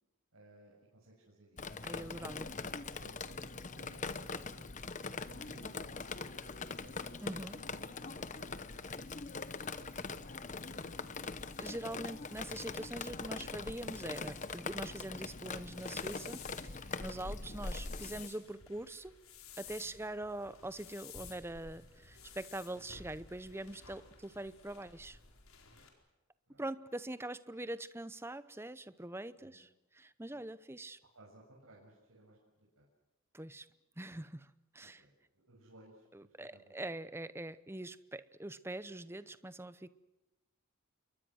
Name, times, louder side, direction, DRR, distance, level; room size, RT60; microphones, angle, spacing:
voice 1, 0.3-1.6 2.1-8.9 9.6-11.4 18.3-18.4 19.8-20.0 25.7-25.9 26.5-26.6 29.4-29.6 30.3-30.4 31.0-32.9 34.8-36.9, right 1 dB, 80° right, -4 dB, 6.9 m, -60 dB
Drip, 1.6-18.3, left 4 dB, 35° left, 1.0 m, -42 dB
voice 2, 1.8-2.5 7.2-7.6 11.6-19.1 19.6-25.2 26.6-29.7 29.9-31.0 33.3-33.7 34.0-35.0 36.1-39.9, right 1 dB, 10° right, 15 dB, 0.7 m, -43 dB
sound 1, 10.7-25.9, left 6 dB, 70° left, 4.4 m, -56 dB
28.5 x 23.5 x 6.3 m, 1.1 s
head